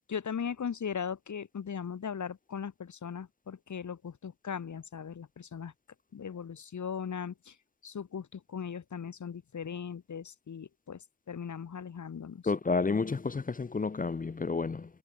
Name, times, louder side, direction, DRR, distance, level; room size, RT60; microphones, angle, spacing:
voice 1, 0.1-5.7 6.1-7.6 7.8-12.4, left 7 dB, 75° left, 2.3 m, -38 dB
voice 2, 12.5-15.0, left 4 dB, 30° left, 0.6 m, -30 dB
wide cardioid pair, 165°, 30 cm